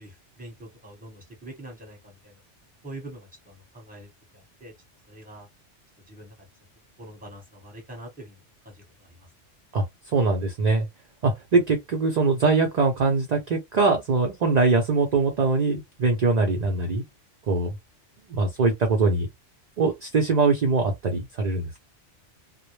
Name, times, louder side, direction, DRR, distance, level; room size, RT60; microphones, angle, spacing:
voice 1, 0.0-2.4 2.8-4.7 5.1-5.5 6.1-6.3 7.0-9.2, right 1 dB, 10° right, 0.9 m, -44 dB
voice 2, 9.7-10.9 11.2-17.0 17.5-17.8 18.3-19.3 19.8-21.8, right 3 dB, 50° right, 0.5 m, -22 dB
2.1 x 2.0 x 3.0 m
omnidirectional pair, 1.2 m